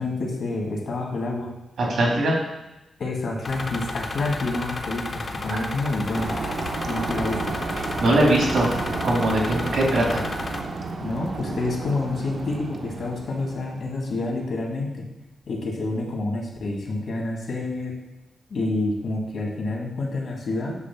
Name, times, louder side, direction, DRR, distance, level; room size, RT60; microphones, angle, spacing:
voice 1, 0.0-1.5 3.0-6.4 6.9-7.5 11.0-15.1 15.5-17.9 18.5-20.8, left 2 dB, 65° left, -1 dB, 1.9 m, -28 dB
voice 2, 1.9-2.4 5.5-5.6 8.0-8.7 9.0-10.2, right 1 dB, 80° right, -2 dB, 2.2 m, -21 dB
sound 1, 3.4-10.6, left 2 dB, 40° left, 0.8 m, -33 dB
sound 2, 6.1-14.1, right 3 dB, 55° right, 0.9 m, -32 dB
8.1 x 3.2 x 5.9 m, 0.96 s
cardioid pair, 105°, 0 cm